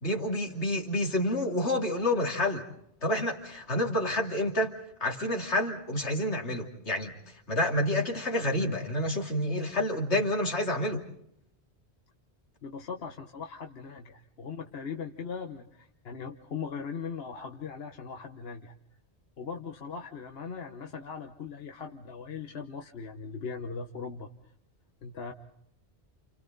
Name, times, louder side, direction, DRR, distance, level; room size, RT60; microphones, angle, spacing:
voice 1, 0.0-2.6 3.0-7.1 7.5-11.0, left 1 dB, 85° left, 1 dB, 2.9 m, -29 dB
voice 2, 12.6-18.7 19.4-24.3 25.0-25.3, left 5 dB, 65° left, 3 dB, 1.4 m, -39 dB
30.0 x 29.0 x 4.0 m, 0.72 s
omnidirectional pair, 1.1 m